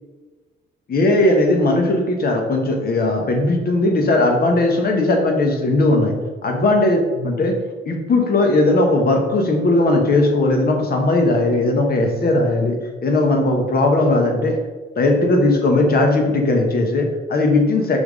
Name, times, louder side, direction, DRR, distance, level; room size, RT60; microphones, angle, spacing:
voice 1, 0.9-6.1 6.4-7.5 7.8-14.6 14.9-18.0, left 2 dB, 50° left, 3 dB, 1.3 m, -18 dB
6.1 x 3.7 x 4.8 m, 1.3 s
cardioid pair, 90°, 20 cm